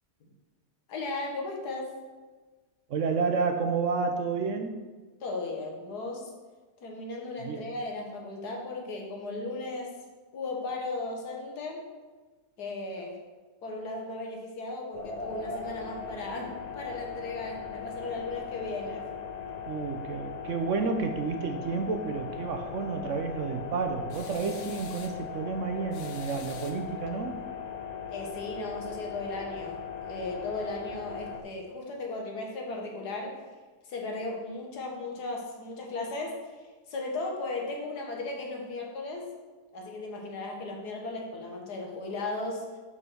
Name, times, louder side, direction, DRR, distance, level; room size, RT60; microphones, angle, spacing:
voice 1, 0.9-1.9 5.2-6.3 6.8-10.0 10.3-11.8 12.6-13.2 13.6-19.1 28.1-29.8 30.0-33.4 33.8-36.4 36.9-39.3 39.7-42.7, left 2 dB, 80° left, 1 dB, 1.9 m, -36 dB
voice 2, 2.9-4.8 7.4-7.6 19.7-27.4, right 5 dB, 60° right, 5 dB, 0.9 m, -30 dB
sound 1, 14.9-31.4, left 6 dB, 40° left, 0.6 m, -39 dB
sound 2, 24.1-25.2 25.9-27.2, left 6 dB, 60° left, 0.9 m, -48 dB
5.6 x 5.5 x 6.2 m, 1.3 s
omnidirectional pair, 1.7 m